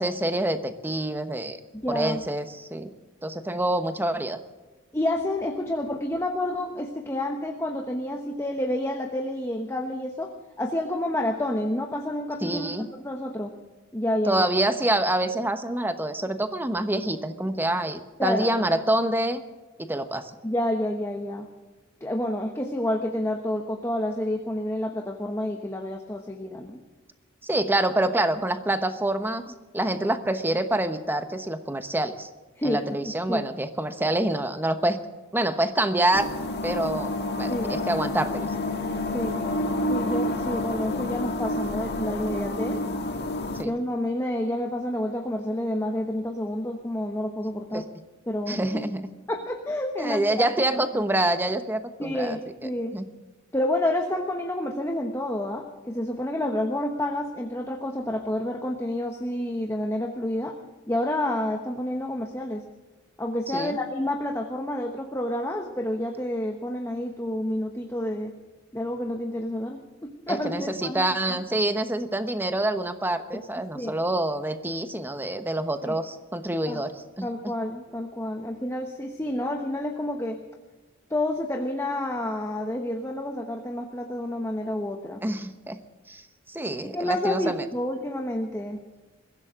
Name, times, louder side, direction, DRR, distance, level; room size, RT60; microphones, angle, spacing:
voice 1, 0.0-1.6 1.9-2.9 3.2-4.4 12.4-12.9 14.2-19.4 19.8-20.3 27.4-32.3 32.6-35.0 35.3-36.3 36.6-38.5 43.5-43.7 47.7-47.9 48.5-49.1 50.0-53.0 63.5-63.8 70.3-77.5 85.2-85.8 86.1-86.2 86.5-87.7, right 1 dB, 10° right, 9 dB, 1.0 m, -26 dB
voice 2, 1.7-2.2 4.9-10.3 10.6-13.5 13.9-14.5 18.2-18.5 20.4-21.5 22.0-26.8 32.6-33.4 37.5-37.8 39.1-39.4 39.9-42.8 43.5-47.8 48.3-48.8 49.3-51.0 52.0-53.0 53.5-60.6 60.9-62.6 63.2-68.3 68.7-71.0 73.3-73.4 73.7-73.9 75.8-76.0 76.7-76.8 77.2-80.4 81.1-85.2 86.8-88.8, left 1 dB, 15° left, 3 dB, 1.1 m, -29 dB
sound 1, 36.1-43.6, left 1 dB, 55° left, 1.6 m, -29 dB
22.0 x 15.5 x 3.8 m, 1.2 s
head